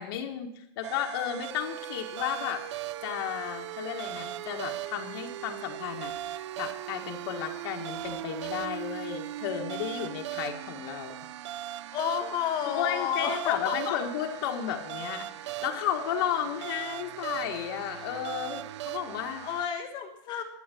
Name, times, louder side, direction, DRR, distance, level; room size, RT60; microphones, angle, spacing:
voice 1, 0.0-2.6 3.0-11.2 12.6-19.4, left 9 dB, 55° left, 2 dB, 1.7 m, -33 dB
sound 1, 0.8-19.7, right 14 dB, 75° right, 0.5 m, -39 dB
voice 2, 11.9-14.0 19.4-20.4, left 9 dB, 30° left, 4 dB, 1.3 m, -31 dB
13.0 x 9.0 x 8.4 m, 0.75 s
supercardioid pair, 170°, 15 cm